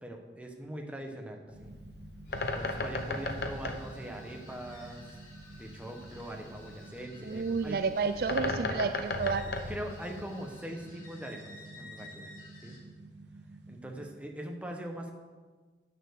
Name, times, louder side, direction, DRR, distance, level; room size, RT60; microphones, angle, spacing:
voice 1, 0.0-1.7 2.5-5.2 5.6-7.8 9.7-12.3 12.6-12.8 13.7-15.1, right 1 dB, 10° right, 1 dB, 1.1 m, -42 dB
Bird, 1.5-10.6, left 2 dB, 65° left, 0.9 m, -37 dB
sound 1, 1.5-14.1, right 2 dB, 85° right, 0.8 m, -51 dB
sound 2, 2.3-12.8, left 2 dB, 45° left, 3.1 m, -54 dB
voice 2, 7.2-9.5, right 4 dB, 55° right, 9 dB, 0.4 m, -30 dB
8.9 x 6.6 x 6.7 m, 1.4 s
head